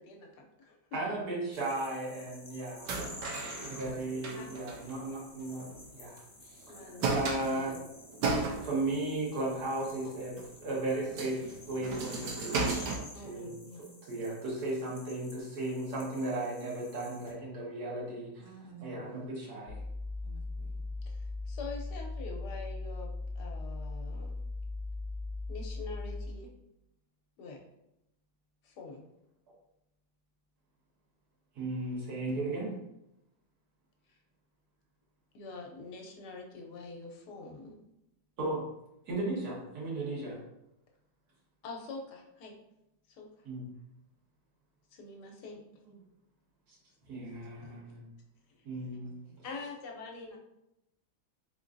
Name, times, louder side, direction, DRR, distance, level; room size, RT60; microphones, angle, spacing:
voice 1, 0.0-0.8 4.3-4.7 6.7-7.7 13.1-13.9 21.1-24.3 25.5-26.5 27.4-27.6 28.6-29.0 35.3-37.8 41.6-42.5 43.2-43.3 44.9-45.6 47.6-47.8 49.4-50.4, left 3 dB, 75° left, 1.3 m, -45 dB
voice 2, 0.9-2.9 3.4-7.8 8.1-12.9 13.2-18.3 18.8-19.8 31.5-32.7 38.4-38.6 39.1-40.4 43.4-43.6 46.7-46.8 47.1-48.1 48.6-49.3, right 2 dB, 65° right, 1.7 m, -36 dB
sound 1, 1.5-17.3, left 2 dB, 30° left, 0.5 m, -51 dB
sound 2, 2.9-5.9 6.2-6.3 6.6-8.9 9.5-9.9 10.4-10.5 10.9-13.0, right 3 dB, 90° right, 1.3 m, -35 dB
voice 3, 18.4-19.3 20.2-20.8 49.0-49.4, right 4 dB, 35° right, 1.0 m, -52 dB
sound 3, 19.7-26.5, left 2 dB, 55° left, 0.9 m, -38 dB
3.8 x 3.7 x 2.5 m
omnidirectional pair, 1.8 m